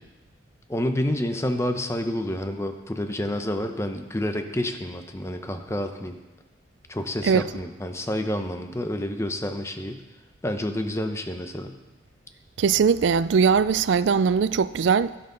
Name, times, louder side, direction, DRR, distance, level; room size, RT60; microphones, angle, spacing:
voice 1, 0.7-6.2 6.9-10.0 10.4-11.7, left 1 dB, 15° left, 0.7 m, -29 dB
voice 2, 12.6-15.2, right 6 dB, 80° right, 0.4 m, -20 dB
12.5 x 11.0 x 3.9 m
head